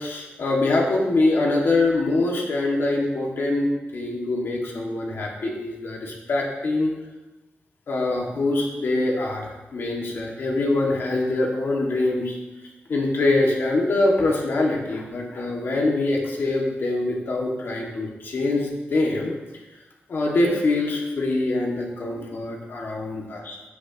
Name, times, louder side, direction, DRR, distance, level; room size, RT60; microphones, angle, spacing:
voice 1, 0.0-6.9 7.9-12.4 12.9-19.3 20.1-23.6, left 2 dB, 60° left, -1 dB, 2.1 m, -24 dB
14.5 x 7.9 x 3.0 m, 1.1 s
wide cardioid pair, 170°, 4 cm